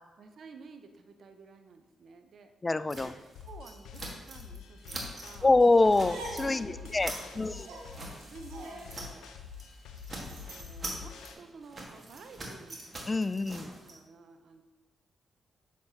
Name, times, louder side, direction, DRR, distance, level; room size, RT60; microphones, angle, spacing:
voice 1, 0.2-2.5 3.0-3.1 3.4-5.6 6.4-7.8 8.2-9.3 10.3-12.9 13.6-14.6, right 4 dB, 65° right, 7 dB, 0.6 m, -52 dB
voice 2, 2.6-3.1 5.4-7.7 13.1-13.7, left 2 dB, 30° left, 14 dB, 0.3 m, -25 dB
sound 1, 2.9-4.6 4.8-5.4 5.7-6.5 6.8-9.3 9.5-9.7 10.0-13.9, right 2 dB, 40° right, 1.5 m, -43 dB
sound 2, 3.4-11.4, left 7 dB, 85° left, 0.6 m, -47 dB
sound 3, 5.8-10.8, right 1 dB, 90° right, 1.3 m, -46 dB
7.1 x 6.3 x 2.8 m, 1.3 s
supercardioid pair, 55°, 0 cm